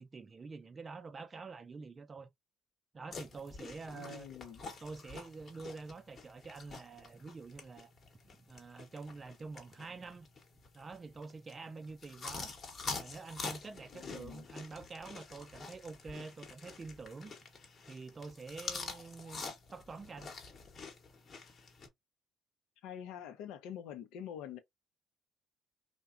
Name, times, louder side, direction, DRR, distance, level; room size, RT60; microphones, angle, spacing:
voice 1, 0.0-2.3 2.9-4.3 4.8-7.9 8.3-10.3 10.7-12.5 13.0-17.3 17.9-19.4 19.7-20.3, right 4 dB, 35° right, 0.4 m, -47 dB
sound 1, 3.1-21.9, left 4 dB, 45° left, 0.9 m, -47 dB
voice 2, 3.9-4.6 13.9-14.4 22.8-24.6, left 9 dB, 75° left, 0.5 m, -46 dB
2.7 x 2.2 x 2.4 m
hypercardioid pair, 60°, 0 cm